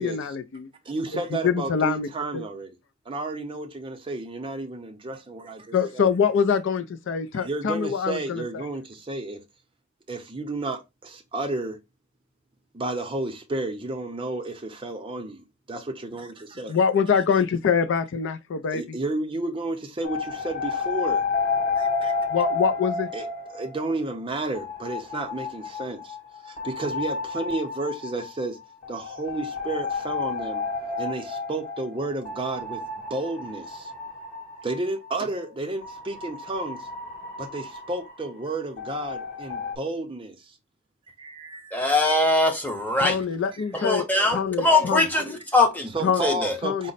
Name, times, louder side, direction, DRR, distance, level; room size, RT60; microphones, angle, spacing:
voice 1, 0.0-0.7 1.1-2.4 5.7-8.7 16.7-19.0 22.3-23.1 43.0-44.0 44.3-45.0 46.0-46.2 46.6-46.9, left 6 dB, 60° left, 0.4 m, -24 dB
voice 2, 0.9-2.7 3.1-6.1 7.4-9.4 10.1-11.8 12.7-16.8 18.7-21.2 21.8-22.1 23.1-23.3 23.5-26.2 26.4-28.6 28.9-30.6 31.0-32.8 33.1-33.9 34.6-36.9 37.4-40.6 41.1-41.8 45.9-46.9, right 2 dB, 25° right, 0.6 m, -32 dB
sound 1, 20.0-24.2 24.5-35.2 35.8-39.8, left 4 dB, 35° left, 1.1 m, -31 dB
voice 3, 41.7-43.2 43.7-46.6, left 2 dB, 10° left, 0.8 m, -22 dB
5.1 x 2.1 x 3.9 m
head